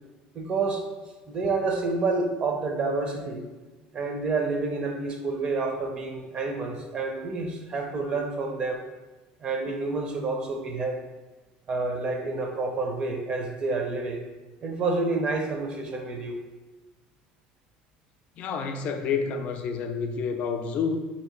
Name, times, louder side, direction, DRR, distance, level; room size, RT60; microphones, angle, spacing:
voice 1, 0.3-0.8 1.3-3.4 3.9-8.8 9.4-11.0 11.7-14.2 14.6-16.4, right 3 dB, 35° right, 4 dB, 0.5 m, -29 dB
voice 2, 18.4-21.0, left 5 dB, 50° left, 6 dB, 0.4 m, -29 dB
3.1 x 2.8 x 4.3 m, 1.2 s
supercardioid pair, 125°, 3 cm